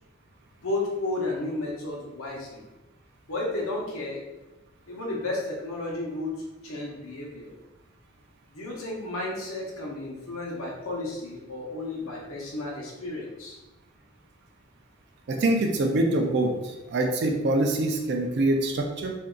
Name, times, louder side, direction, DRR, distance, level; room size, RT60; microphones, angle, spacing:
voice 1, 0.6-2.6 3.3-4.2 4.9-7.5 8.5-13.6, left 2 dB, 85° left, -2 dB, 0.8 m, -33 dB
voice 2, 15.3-19.1, right 2 dB, 55° right, 3 dB, 0.4 m, -25 dB
2.6 x 2.3 x 3.6 m, 1.0 s
head